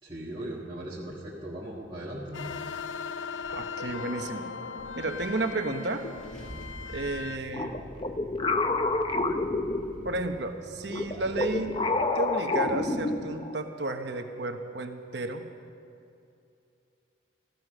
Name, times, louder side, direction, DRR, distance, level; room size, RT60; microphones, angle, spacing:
voice 1, 0.0-2.5, right 1 dB, 25° right, -6 dB, 1.6 m, -38 dB
sound 1, 2.3-7.4, left 5 dB, 80° left, 0.6 m, -38 dB
voice 2, 3.5-4.5 5.0-6.0 6.9-7.8 10.0-11.8 12.1-15.4, right 2 dB, 60° right, 6 dB, 1.2 m, -32 dB
Car / Engine starting, 5.1-5.2 5.8-12.0, right 1 dB, 5° left, 2.6 m, -47 dB
sound 2, 7.5-10.3 10.9-13.6, left 2 dB, 25° left, 0.6 m, -29 dB
16.0 x 13.5 x 6.5 m, 2.6 s
head